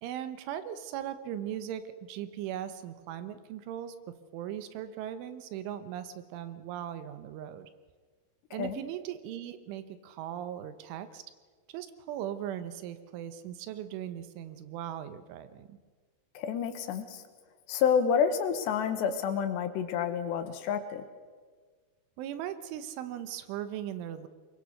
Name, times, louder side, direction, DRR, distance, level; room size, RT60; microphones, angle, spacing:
voice 1, 0.0-4.0 4.3-7.7 8.5-11.2 11.7-15.8 22.2-24.3, right 10 dB, 85° right, 11 dB, 3.6 m, -39 dB
voice 2, 16.3-17.2 17.7-21.0, left 7 dB, 70° left, 9 dB, 3.3 m, -29 dB
24.5 x 23.0 x 6.5 m, 1.5 s
omnidirectional pair, 5.5 m